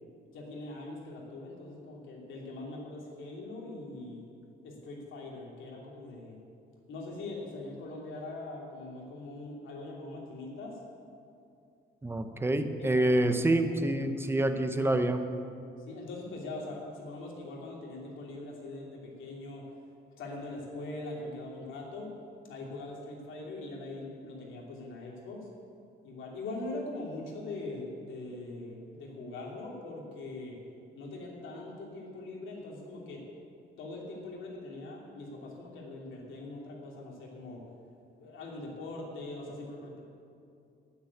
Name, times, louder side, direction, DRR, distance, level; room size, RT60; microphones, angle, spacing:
voice 1, 0.3-4.2 4.6-6.4 6.9-10.8 12.8-14.0 15.8-19.6 20.2-22.1 22.4-25.5 26.0-30.6 30.9-33.2 33.8-37.6 38.2-40.0, left 2 dB, 75° left, -2 dB, 3.0 m, -42 dB
voice 2, 12.0-15.3, right 1 dB, 10° right, 8 dB, 0.8 m, -27 dB
10.0 x 9.4 x 8.5 m, 2.5 s
cardioid pair, 130°, 20 cm